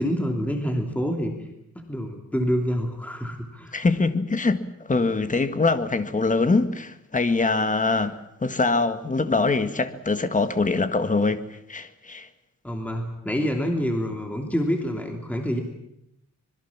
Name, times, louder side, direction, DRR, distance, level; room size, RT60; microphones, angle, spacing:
voice 1, 0.0-1.3 1.7-3.8 12.6-15.6, equal, 5° left, 3.0 m, -27 dB
voice 2, 3.7-4.6 4.9-8.1 8.4-11.4 11.7-12.3, left 3 dB, 25° left, 1.7 m, -23 dB
25.5 x 22.0 x 7.3 m
wide cardioid pair, 135°, 30 cm